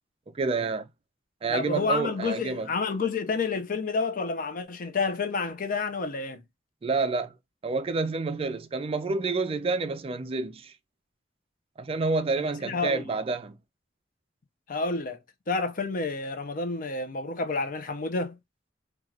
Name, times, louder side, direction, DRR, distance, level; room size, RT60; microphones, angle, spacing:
voice 1, 0.3-0.9 1.4-2.7 6.8-7.3 7.6-10.7 11.8-13.6, right 3 dB, 30° right, 0.4 m, -28 dB
voice 2, 1.5-6.4 12.4-13.1 14.7-15.2 15.5-18.4, left 4 dB, 50° left, 0.6 m, -29 dB
3.1 x 2.4 x 3.6 m
head